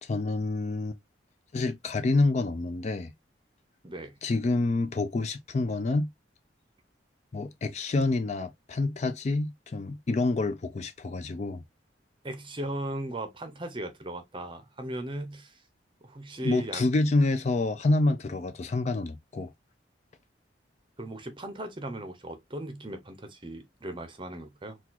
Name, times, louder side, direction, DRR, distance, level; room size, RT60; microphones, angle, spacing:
voice 1, 0.0-1.0 1.5-3.1 4.2-6.1 7.3-11.6 16.4-19.5, left 2 dB, 35° left, 0.4 m, -27 dB
voice 2, 3.8-4.1 12.2-15.6 16.0-16.8 21.0-24.8, right 1 dB, 25° right, 0.6 m, -37 dB
3.9 x 2.3 x 2.8 m
head